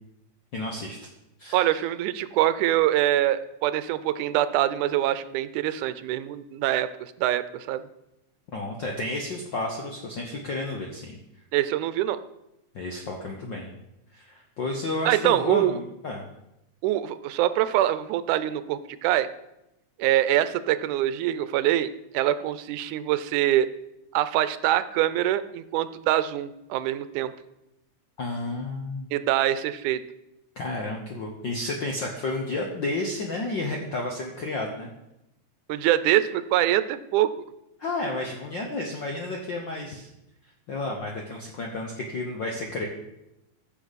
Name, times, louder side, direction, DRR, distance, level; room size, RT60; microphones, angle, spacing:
voice 1, 0.5-1.0 1.4-1.8 8.5-11.2 12.7-13.7 14.1-16.3 28.2-29.1 30.6-34.9 37.8-40.1 40.7-42.9, left 2 dB, 70° left, 1 dB, 1.1 m, -31 dB
voice 2, 1.5-7.8 11.5-12.2 15.1-15.8 16.8-19.3 20.0-23.7 24.1-27.3 29.1-30.0 35.7-37.3, right 13 dB, 85° right, 14 dB, 2.0 m, -24 dB
15.0 x 6.8 x 4.1 m, 0.88 s
omnidirectional pair, 3.5 m